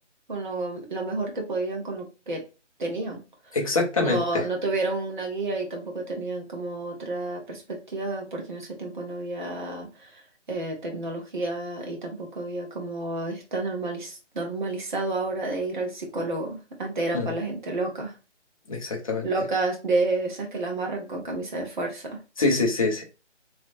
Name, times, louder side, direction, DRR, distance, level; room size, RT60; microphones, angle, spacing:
voice 1, 0.3-2.4 2.8-3.2 4.0-10.2 10.5-18.1 19.2-22.2, right 2 dB, 40° right, 0 dB, 1.2 m, -30 dB
voice 2, 3.5-4.4 17.1-17.3 18.7-19.3 22.4-23.0, left 3 dB, 30° left, 1 dB, 0.8 m, -25 dB
3.2 x 3.0 x 2.5 m, 0.31 s
figure-of-eight pair, 150°, 36 cm